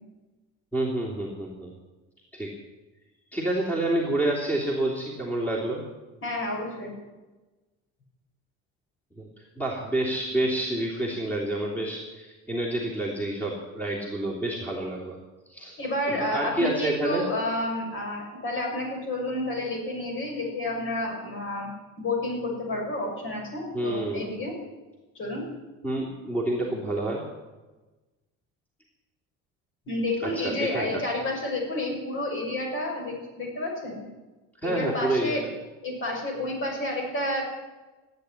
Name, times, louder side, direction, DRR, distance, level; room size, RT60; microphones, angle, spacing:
voice 1, 0.7-1.7 2.3-2.5 3.3-5.8 9.2-9.3 9.6-15.2 15.5-15.8 16.1-17.2 23.7-24.3 25.8-27.2 30.2-31.0 34.6-35.5, right 1 dB, 5° left, -3 dB, 3.2 m, -28 dB
voice 2, 6.2-6.9 15.8-21.7 22.0-24.5 25.1-25.5 29.9-34.0 34.6-35.4 35.8-37.4, left 1 dB, 40° left, 0 dB, 6.4 m, -30 dB
15.0 x 9.4 x 9.8 m, 1.2 s
cardioid pair, 125°, 32 cm